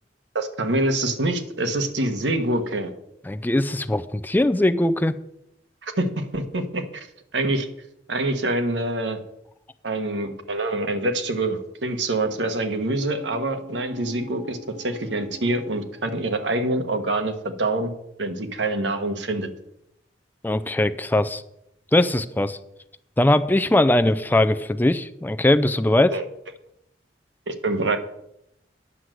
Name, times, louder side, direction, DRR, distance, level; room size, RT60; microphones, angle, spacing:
voice 1, 0.3-2.9 5.8-7.1 7.3-7.7 8.1-9.2 9.8-17.9 18.2-19.5 26.1-26.2 27.5-28.0, right 2 dB, 85° right, 7 dB, 1.2 m, -25 dB
voice 2, 3.3-5.2 20.4-21.4 21.9-22.6 23.2-26.1, left 1 dB, 10° left, 11 dB, 0.4 m, -20 dB
sound 1, 13.1-16.8 17.2-17.3, left 1 dB, 40° right, 1.1 m, -44 dB
9.8 x 6.3 x 7.7 m, 0.80 s
head